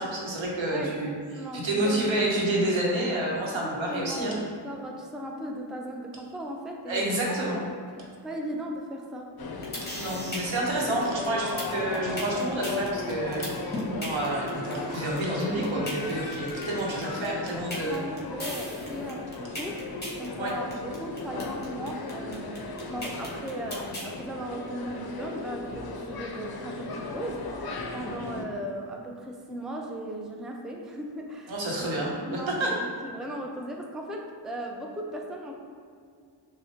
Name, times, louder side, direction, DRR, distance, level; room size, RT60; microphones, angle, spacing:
voice 1, 0.0-1.1 1.5-4.4 6.9-7.6 9.9-18.0 20.4-20.5 31.5-32.8, right 1 dB, 85° right, -4 dB, 0.9 m, -29 dB
voice 2, 0.7-2.2 3.5-4.3 4.6-7.7 8.2-9.3 17.2-19.8 20.2-27.6 27.9-31.5 32.0-35.6, right 1 dB, ahead, 1 dB, 0.3 m, -37 dB
sound 1, 9.4-28.4, left 3 dB, 55° left, 0.5 m, -37 dB
sound 2, 9.6-24.1, equal, 20° left, 1.1 m, -37 dB
6.2 x 2.1 x 2.8 m, 2.1 s
wide cardioid pair, 50°, 45 cm